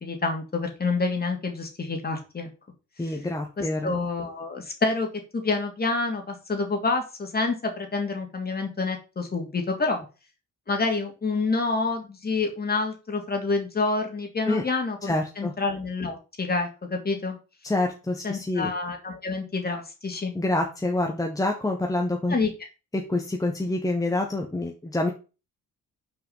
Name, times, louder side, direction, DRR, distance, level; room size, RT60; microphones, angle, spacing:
voice 1, 0.0-2.5 3.1-3.2 3.6-5.1 5.3-10.0 10.7-17.4 18.2-20.3 22.3-22.5, left 3 dB, 30° left, 3 dB, 2.5 m, -28 dB
voice 2, 3.0-3.9 14.4-14.6 15.0-15.5 17.6-18.7 20.3-22.3 22.9-25.1, left 2 dB, 10° left, 2 dB, 1.2 m, -27 dB
6.1 x 4.7 x 5.6 m, 0.32 s
cardioid pair, 90°, 30 cm